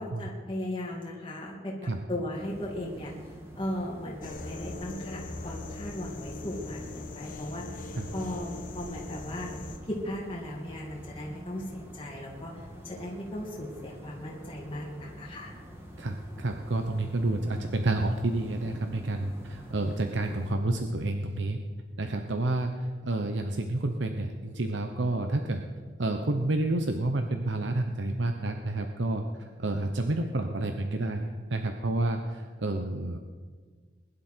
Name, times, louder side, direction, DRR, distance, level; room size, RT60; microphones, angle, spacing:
voice 1, 0.0-1.7 2.1-7.9 8.1-9.5 9.9-15.5, left 1 dB, 30° left, -4 dB, 2.5 m, -37 dB
sound 1, 2.3-20.5, equal, 15° right, 2.2 m, -46 dB
sound 2, 4.2-9.8, left 2 dB, 45° left, 1.5 m, -41 dB
voice 2, 16.0-21.6 22.0-25.6 26.0-33.2, right 2 dB, 85° right, 5 dB, 1.0 m, -29 dB
21.0 x 11.5 x 4.5 m, 1.5 s
head